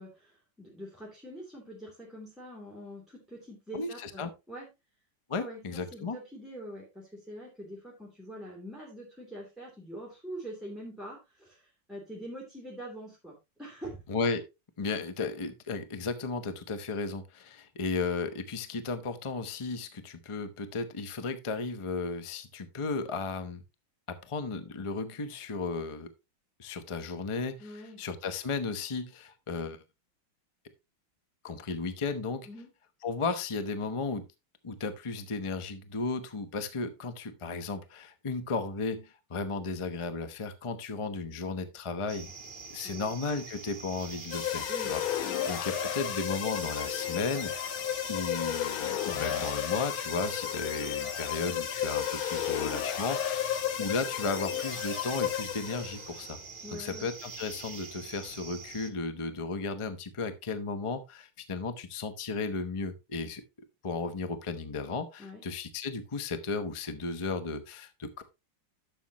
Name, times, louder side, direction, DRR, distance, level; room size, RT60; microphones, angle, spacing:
voice 1, 0.0-4.7 5.4-14.0 27.6-28.0 32.5-32.7 42.8-43.2 44.7-44.9 45.2-45.4 56.6-57.1 65.2-65.4, equal, ahead, -4 dB, 2.6 m, -44 dB
voice 2, 3.7-4.3 5.3-6.2 14.1-14.4 14.8-23.6 24.1-26.1 26.6-29.8 31.4-32.5 33.0-34.2 34.6-42.3 42.7-47.8 48.1-56.4 56.7-63.4 63.8-68.2, left 4 dB, 45° left, 11 dB, 0.4 m, -34 dB
sound 1, 42.1-58.9, right 4 dB, 30° right, 1.1 m, -45 dB
sound 2, 44.3-56.1, left 10 dB, 85° left, 1.7 m, -33 dB
11.5 x 7.0 x 3.0 m, 0.24 s
omnidirectional pair, 2.2 m